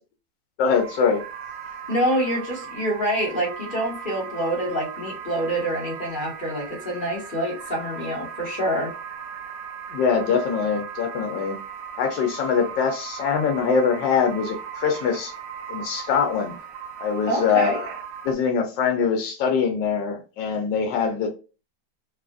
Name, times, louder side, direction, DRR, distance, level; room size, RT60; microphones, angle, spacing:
voice 1, 0.6-1.2 9.9-11.6 12.0-15.3 15.7-16.5 17.0-17.9 18.2-21.3, left 6 dB, 90° left, 3 dB, 1.3 m, -23 dB
sound 1, 0.7-18.3, right 7 dB, 90° right, 1.3 m, -37 dB
voice 2, 1.9-8.9 17.3-17.8, right 1 dB, 30° left, -2 dB, 1.2 m, -26 dB
3.6 x 2.4 x 2.4 m, 0.34 s
omnidirectional pair, 1.9 m